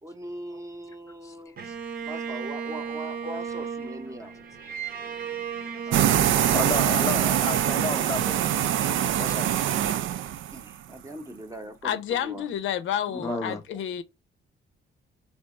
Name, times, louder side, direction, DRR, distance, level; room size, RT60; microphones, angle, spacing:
voice 1, 0.0-1.6 2.0-4.3 5.9-6.7 10.5-12.4 13.1-13.8, right 1 dB, 15° right, 0.8 m, -40 dB
Bowed string instrument, 1.6-8.8, right 6 dB, 50° right, 0.8 m, -36 dB
sound 1, 5.9-10.7, right 10 dB, 75° right, 0.4 m, -24 dB
voice 2, 6.5-9.6 13.2-13.6, left 4 dB, 15° left, 0.5 m, -34 dB
voice 3, 11.8-14.0, left 10 dB, 80° left, 0.7 m, -29 dB
3.4 x 2.9 x 4.2 m
cardioid pair, 90°, 20 cm